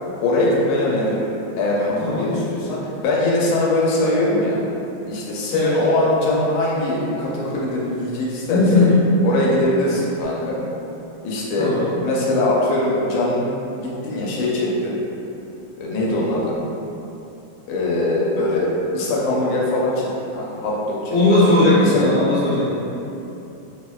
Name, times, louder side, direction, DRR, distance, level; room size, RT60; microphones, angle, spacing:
voice 1, 0.2-1.3 1.6-4.6 5.1-8.9 9.2-10.6 11.2-11.7 12.0-13.4 13.7-14.9 15.8-16.6 17.7-21.2 21.8-22.0, left 1 dB, 85° left, -5 dB, 1.4 m, -21 dB
voice 2, 2.0-2.4 5.5-5.8 8.4-9.1 11.6-12.0 21.1-22.9, left 2 dB, 45° left, -11 dB, 1.1 m, -18 dB
4.4 x 2.1 x 2.2 m, 2.8 s
omnidirectional pair, 2.2 m